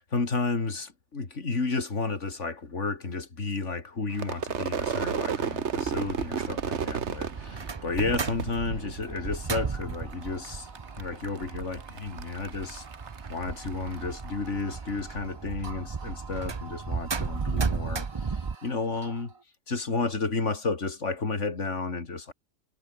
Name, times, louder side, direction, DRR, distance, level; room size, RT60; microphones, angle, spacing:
voice 1, 0.0-10.7 11.0-12.9 13.3-19.3 19.7-22.3, left 3 dB, 60° left, 3.0 m, -32 dB
Crowd / Fireworks, 4.1-9.5 9.8-10.5 10.8-14.3, right 7 dB, 60° right, 1.5 m, -33 dB
sound 1, 4.8-18.5, right 5 dB, 35° right, 0.4 m, -36 dB
sound 2, 9.3-19.4, right 4 dB, 85° right, 3.1 m, -50 dB
omnidirectional pair, 1.4 m